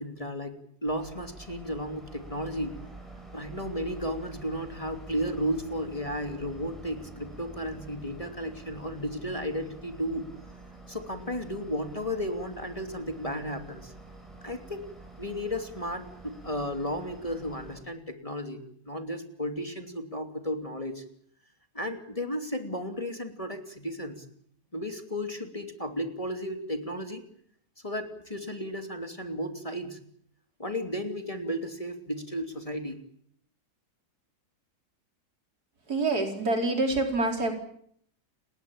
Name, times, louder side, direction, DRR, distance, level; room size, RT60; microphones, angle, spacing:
voice 1, 0.0-2.8 3.3-10.3 10.9-13.9 14.4-14.8 15.2-21.0 21.7-24.2 24.7-27.2 27.8-30.0 30.6-33.0, equal, 20° left, 6 dB, 2.9 m, -34 dB
sound 1, 0.8-17.8, right 2 dB, ahead, 7.9 m, -47 dB
voice 2, 35.9-37.5, right 2 dB, 75° right, 4 dB, 5.1 m, -26 dB
29.5 x 19.5 x 8.8 m, 0.66 s
omnidirectional pair, 1.7 m